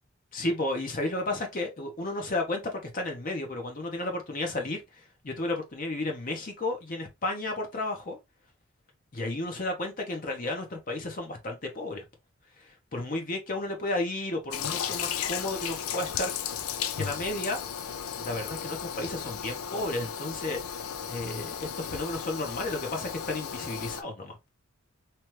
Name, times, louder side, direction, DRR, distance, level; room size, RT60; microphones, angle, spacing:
voice 1, 0.3-8.2 9.1-12.0 12.6-16.3 17.0-17.6 18.2-20.6 21.1-24.4, left 2 dB, 40° left, 0.8 m, -33 dB
Toilet flush, 14.5-24.0, left 8 dB, 85° left, 0.4 m, -35 dB
2.9 x 2.3 x 3.1 m
head